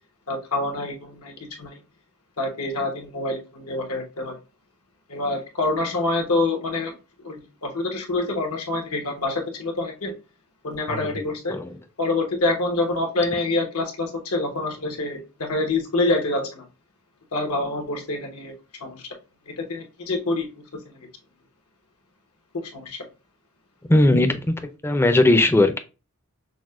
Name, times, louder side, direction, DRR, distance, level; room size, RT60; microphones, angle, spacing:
voice 1, 0.3-1.8 2.4-4.4 5.1-10.1 10.6-11.6 12.0-16.6 17.3-18.5 18.8-19.0 19.6-21.1 22.7-23.0 24.1-24.2, left 2 dB, 85° left, 1.1 m, -26 dB
voice 2, 10.9-11.7 23.9-24.3 24.8-25.8, left 1 dB, 10° left, 0.4 m, -19 dB
6.0 x 2.1 x 2.4 m
head